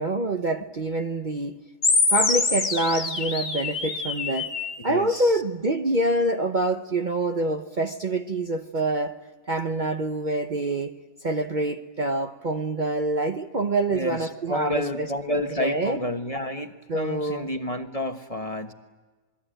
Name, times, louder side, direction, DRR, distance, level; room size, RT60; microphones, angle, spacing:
voice 1, 0.0-1.6 2.1-4.5 4.8-9.2 9.5-10.9 11.2-16.0 16.9-17.5, right 2 dB, 40° right, 6 dB, 0.9 m, -26 dB
sound 1, 1.8-4.8, left 4 dB, 45° left, 1.9 m, -25 dB
voice 2, 4.9-5.4 13.9-18.7, left 1 dB, 25° left, 6 dB, 1.3 m, -30 dB
27.5 x 21.0 x 9.0 m, 1.3 s
omnidirectional pair, 1.4 m